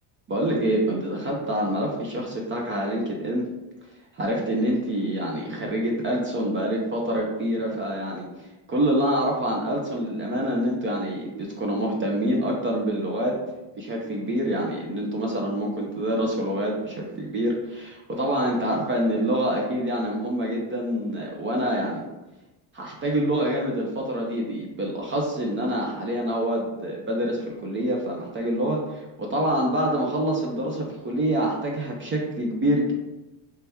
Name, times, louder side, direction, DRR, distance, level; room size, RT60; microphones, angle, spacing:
voice 1, 0.3-3.5 4.1-13.4 13.7-22.0 22.7-32.9, right 1 dB, 25° right, -1 dB, 0.4 m, -26 dB
3.3 x 2.8 x 3.4 m, 1.0 s
cardioid pair, 135°, 48 cm